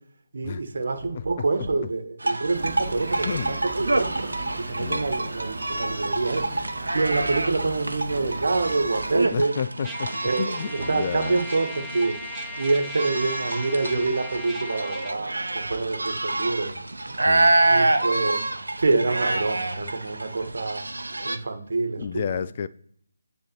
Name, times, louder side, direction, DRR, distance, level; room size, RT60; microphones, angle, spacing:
voice 1, 0.3-4.3 4.6-6.5 6.9-9.5 10.2-12.2 12.6-16.7 17.1-20.8 21.2-22.1 22.3-22.4, right 3 dB, 50° right, 1.6 m, -27 dB
sound 1, 2.2-21.4, right 2 dB, 70° right, 0.9 m, -27 dB
sound 2, 2.5-9.3, right 2 dB, 25° right, 1.5 m, -37 dB
voice 2, 3.3-3.6 4.8-5.1 9.3-10.1 10.4-11.4 17.3-17.6 22.0-22.7, left 7 dB, 30° left, 0.3 m, -30 dB
Trumpet, 9.8-15.2, equal, 5° right, 0.8 m, -38 dB
9.5 x 3.5 x 4.5 m
figure-of-eight pair, 155°, 0 cm